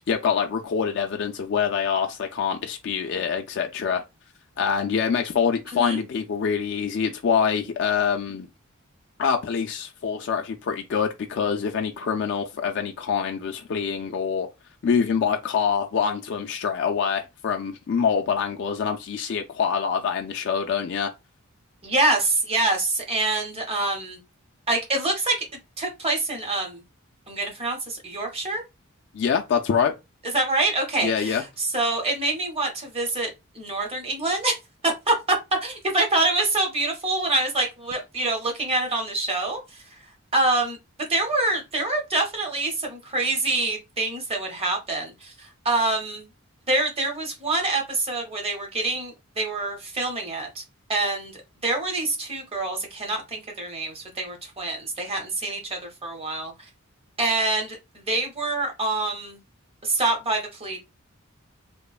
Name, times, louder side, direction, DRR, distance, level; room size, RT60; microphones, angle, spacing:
voice 1, 0.0-4.0 4.6-8.5 9.2-14.5 14.8-21.1 29.1-29.9 31.0-31.4, left 6 dB, 55° left, 0.3 m, -25 dB
voice 2, 21.8-24.2 24.7-25.4 25.8-26.8 27.3-28.6 30.3-34.5 34.8-39.6 40.3-40.8 41.1-46.3 46.7-50.6 50.9-51.3 51.6-56.5 57.2-59.4 59.8-60.8, right 2 dB, 25° right, 0.7 m, -26 dB
2.9 x 2.0 x 2.3 m
head